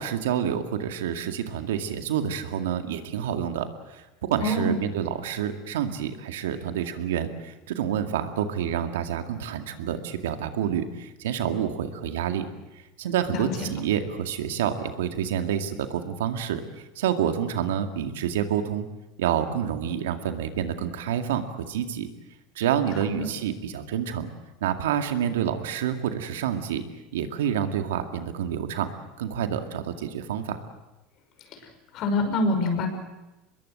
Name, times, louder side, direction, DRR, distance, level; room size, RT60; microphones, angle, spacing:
voice 1, 0.0-3.7 3.9-12.5 13.0-18.9 19.2-22.1 22.6-24.3 24.6-26.8 27.1-28.9 29.2-30.6, right 9 dB, 90° right, 7 dB, 2.1 m, -28 dB
voice 2, 4.4-4.8 13.3-13.7 23.2-23.3 31.5-31.6 31.9-32.9, left 2 dB, 50° left, 6 dB, 5.7 m, -25 dB
24.0 x 21.5 x 8.0 m, 1.0 s
supercardioid pair, 110°, 0 cm